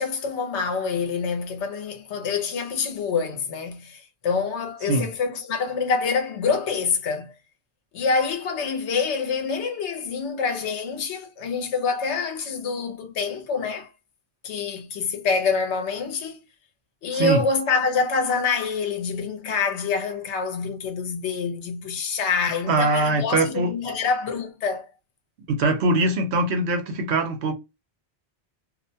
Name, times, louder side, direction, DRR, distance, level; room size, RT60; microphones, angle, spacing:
voice 1, 0.0-7.3 7.9-13.9 14.4-16.4 17.0-24.9, left 5 dB, 80° left, 1.0 m, -26 dB
voice 2, 22.7-23.9 25.5-27.5, right 2 dB, 75° right, 0.9 m, -22 dB
2.5 x 2.1 x 2.6 m
omnidirectional pair, 1.1 m